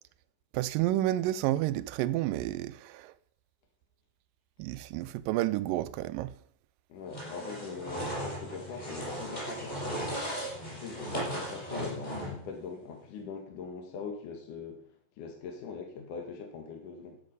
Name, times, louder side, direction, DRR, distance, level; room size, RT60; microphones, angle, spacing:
voice 1, 0.5-3.1 4.6-6.3, right 15 dB, 80° right, 2.2 m, -30 dB
voice 2, 6.9-10.1 10.6-14.8 15.2-17.2, left 5 dB, 65° left, 3.0 m, -42 dB
sound 1, 7.1-12.5, equal, 10° left, 6.0 m, -37 dB
14.5 x 7.2 x 5.4 m
omnidirectional pair, 4.0 m